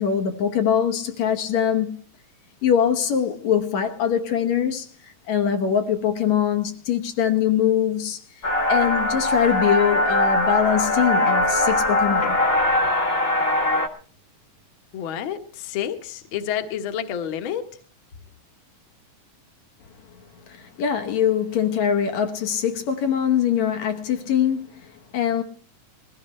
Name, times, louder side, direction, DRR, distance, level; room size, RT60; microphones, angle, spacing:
voice 1, 0.0-1.9 2.6-8.2 8.7-12.4 20.5-25.4, left 8 dB, 70° left, 2.5 m, -23 dB
sound 1, 8.4-13.9, left 1 dB, 35° left, 1.0 m, -21 dB
voice 2, 14.9-17.7, left 9 dB, 50° left, 1.9 m, -29 dB
21.0 x 15.5 x 3.3 m
omnidirectional pair, 3.3 m